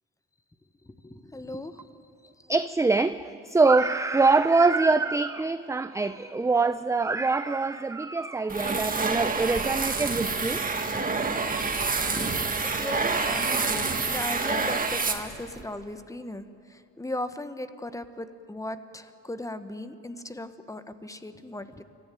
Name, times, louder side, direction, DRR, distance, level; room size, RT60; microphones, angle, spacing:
voice 1, 0.8-1.9 10.6-10.9 11.3-21.8, left 1 dB, 10° left, 11 dB, 1.2 m, -38 dB
voice 2, 2.5-10.6, right 3 dB, 10° right, 12 dB, 0.5 m, -24 dB
sound 1, 8.5-15.6, right 4 dB, 30° right, 1.9 m, -27 dB
24.5 x 15.0 x 9.2 m, 2.6 s
cardioid pair, 90°, 30 cm